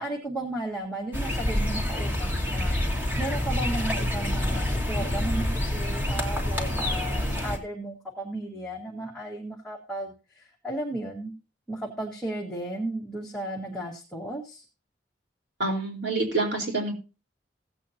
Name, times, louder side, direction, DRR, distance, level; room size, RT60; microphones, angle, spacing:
voice 1, 0.0-11.3 11.7-14.6, right 1 dB, 5° left, -5 dB, 1.7 m, -35 dB
sound 1, 1.1-7.6, left 1 dB, 10° right, 2.2 m, -27 dB
voice 2, 15.6-16.9, right 2 dB, 65° right, 0 dB, 4.2 m, -27 dB
16.5 x 8.5 x 2.8 m, 0.31 s
head